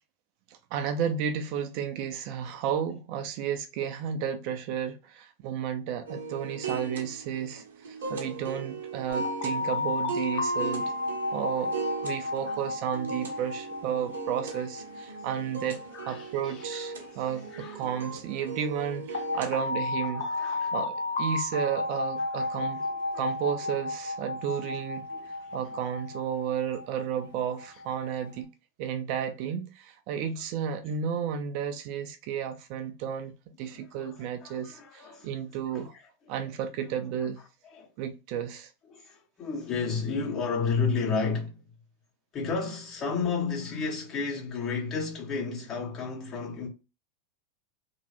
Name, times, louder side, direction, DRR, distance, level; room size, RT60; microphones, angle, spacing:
voice 1, 0.7-10.9 11.3-11.8 12.0-15.8 16.1-20.3 20.7-22.8 23.1-25.1 25.5-28.5 28.8-33.3 33.6-35.9 36.3-37.4 38.0-38.7, right 8 dB, 50° right, 0.5 m, -32 dB
sound 1, 6.1-19.6, right 4 dB, 75° right, 0.8 m, -39 dB
sound 2, 9.1-17.9 19.1-28.3, left 2 dB, 70° left, 0.8 m, -33 dB
voice 2, 12.2-12.6 14.5-14.6 15.9-18.1 18.4-18.6 19.3-19.6 20.1-20.7 22.2-23.4 23.6-23.7 24.6-24.8 25.1-25.3 25.6-25.8 30.1-30.3 33.6-35.4 35.7-36.3 37.6-37.9 38.8-41.6 42.3-46.7, left 5 dB, 35° left, 1.5 m, -34 dB
3.0 x 2.1 x 2.9 m
hypercardioid pair, 95°, 0 cm